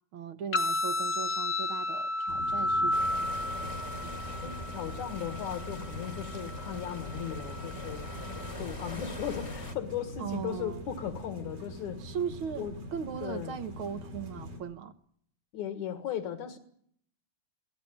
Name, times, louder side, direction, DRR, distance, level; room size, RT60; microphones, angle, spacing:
voice 1, 0.1-3.2 10.2-10.9 12.0-14.9, right 7 dB, 60° right, 11 dB, 1.5 m, -38 dB
sound 1, 0.5-8.5, left 1 dB, 45° left, 0.9 m, -33 dB
sound 2, 2.3-14.6, equal, 85° right, 6.4 m, -43 dB
sound 3, 2.9-9.7, left 2 dB, 15° left, 1.2 m, -43 dB
voice 2, 4.4-12.0 12.6-12.7 13.2-13.6 15.5-16.6, left 9 dB, 70° left, 7 dB, 3.0 m, -37 dB
23.0 x 18.0 x 8.6 m, 0.65 s
omnidirectional pair, 3.6 m